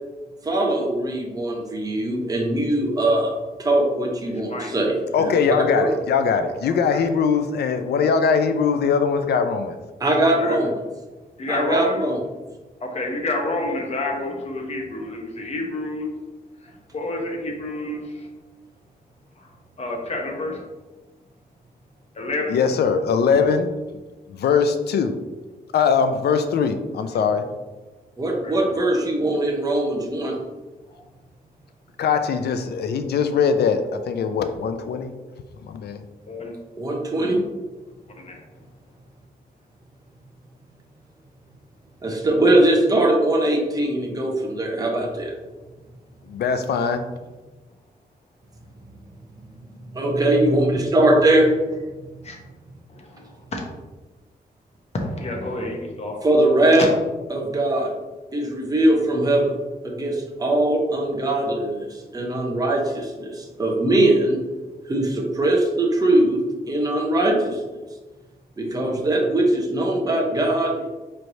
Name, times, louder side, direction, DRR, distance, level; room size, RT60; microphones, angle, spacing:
voice 1, 0.4-5.3 5.7-5.9 10.0-10.7 11.5-12.2 28.2-30.4 36.8-37.4 42.0-45.3 49.8-51.6 56.2-56.9 57.3-57.9 58.3-59.5 59.8-64.4 64.8-67.6 68.6-70.9, right 1 dB, 20° right, -1 dB, 0.7 m, -21 dB
voice 2, 5.1-9.8 22.5-23.7 24.3-25.1 25.7-27.4 32.0-35.1 35.6-36.0 46.3-47.0, left 6 dB, 80° left, 9 dB, 0.4 m, -21 dB
voice 3, 11.4-12.0 12.8-16.1 16.6-18.3 19.4-19.5 19.8-20.6 22.1-22.6 28.4-28.5 30.9-31.0 36.3-36.6 38.2-38.4 52.2-52.4 52.9-53.6 54.9-56.2 56.8-56.9, left 2 dB, 40° left, 1 dB, 0.8 m, -29 dB
4.4 x 3.2 x 2.6 m, 1.2 s
wide cardioid pair, 135°, 17 cm